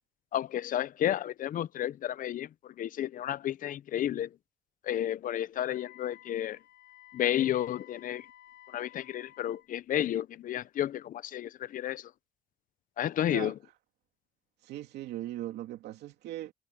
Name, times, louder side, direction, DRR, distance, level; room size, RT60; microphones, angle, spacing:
voice 1, 0.3-4.4 4.8-6.6 7.1-8.3 8.7-12.1 13.0-13.6, left 11 dB, 55° left, 0.7 m, -32 dB
Wind instrument woodwind instrument, 5.6-9.7, left 14 dB, 85° left, 3.7 m, -55 dB
voice 2, 14.6-16.5, right 14 dB, 80° right, 2.8 m, -39 dB
cardioid pair, 110°, 17 cm